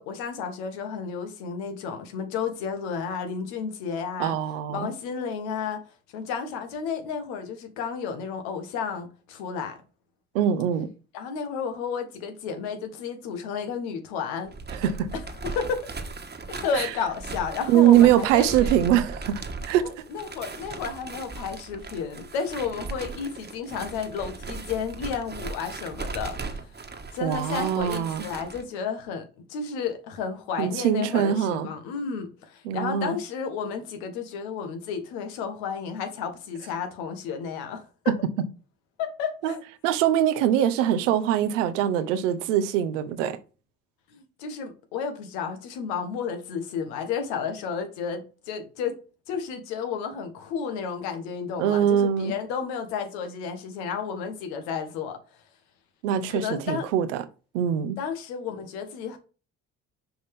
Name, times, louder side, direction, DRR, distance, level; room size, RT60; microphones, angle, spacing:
voice 1, 0.0-4.4 4.7-5.8 6.1-9.8 11.1-14.5 15.4-15.9 16.5-18.7 19.8-26.6 27.1-38.1 39.0-39.6 44.1-49.0 49.3-55.2 56.3-56.9 58.0-59.2, left 6 dB, 80° left, 1.3 m, -32 dB
voice 2, 4.2-4.9 10.3-10.9 14.7-15.1 16.7-16.9 17.7-19.9 27.2-28.3 30.6-31.7 32.6-33.2 39.4-39.5 39.8-43.4 51.6-52.3 56.0-57.2 57.5-58.0, right 10 dB, 90° right, 0.7 m, -23 dB
sound 1, 14.4-28.6, right 3 dB, 30° right, 1.3 m, -37 dB
6.1 x 5.0 x 3.5 m
hypercardioid pair, 50°, 36 cm